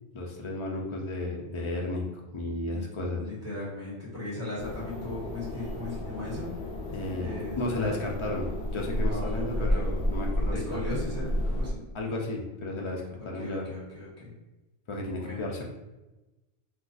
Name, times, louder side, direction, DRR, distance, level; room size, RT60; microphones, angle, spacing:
voice 1, 0.1-2.1 2.3-3.2 6.9-10.8 11.9-13.6 14.9-15.6, left 2 dB, 55° left, -1 dB, 0.3 m, -33 dB
voice 2, 3.2-6.5 7.2-8.0 9.1-9.8 10.5-11.8 13.2-14.3 15.2-15.4, left 1 dB, 15° right, -7 dB, 1.2 m, -38 dB
sound 1, 4.6-11.7, left 1 dB, 70° left, 0.9 m, -32 dB
2.5 x 2.4 x 3.8 m, 1.0 s
omnidirectional pair, 1.1 m